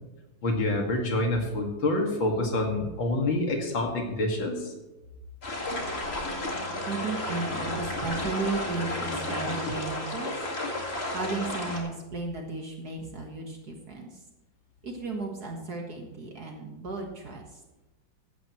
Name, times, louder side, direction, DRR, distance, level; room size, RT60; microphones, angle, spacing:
voice 1, 0.4-4.6, left 2 dB, 75° left, 1 dB, 2.9 m, -27 dB
sound 1, 5.4-11.8, left 1 dB, 30° left, 2.2 m, -32 dB
voice 2, 6.9-10.3 11.1-14.2 14.8-17.6, right 3 dB, 55° right, 1 dB, 1.9 m, -34 dB
15.5 x 12.5 x 3.2 m, 1.1 s
omnidirectional pair, 2.2 m